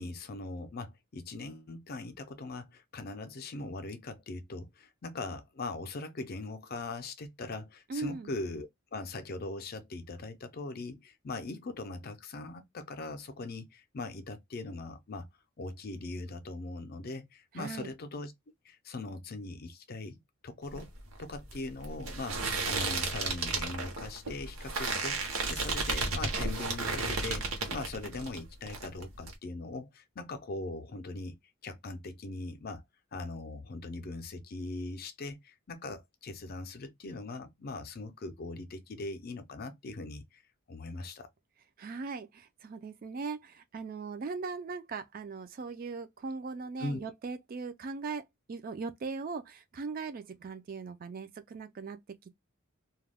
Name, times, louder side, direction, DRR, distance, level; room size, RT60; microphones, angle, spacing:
voice 1, 0.0-15.3 15.6-18.3 18.6-20.9 21.2-31.4 31.6-32.8 33.1-40.4 40.7-41.3 46.8-47.0, left 2 dB, 45° left, 0.5 m, -40 dB
voice 2, 7.9-8.3 17.5-17.9 41.8-52.3, right 4 dB, 40° right, 0.3 m, -39 dB
sound 1, 20.7-28.4 28.7-29.3, right 3 dB, 75° right, 0.9 m, -33 dB
2.3 x 2.1 x 3.3 m
head